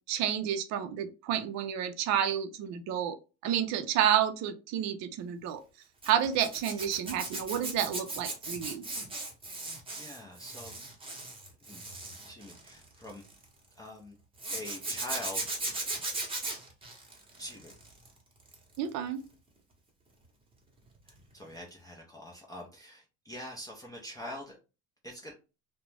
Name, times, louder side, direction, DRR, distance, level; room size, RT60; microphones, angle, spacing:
voice 1, 0.1-3.2 3.4-5.6 6.1-8.8 18.8-19.2, right 9 dB, 55° right, 0.4 m, -30 dB
Zipper (clothing), 6.0-13.4 14.4-18.1 18.4-18.8 21.1-21.2 21.5-21.6, right 2 dB, 15° right, 0.8 m, -38 dB
voice 2, 9.6-10.8 11.6-11.9 12.3-13.2 13.7-14.2 14.5-15.5 17.4-17.7 21.1-24.6 25.0-25.3, left 1 dB, 10° left, 0.4 m, -44 dB
2.4 x 2.1 x 3.1 m
cardioid pair, 125°, 34 cm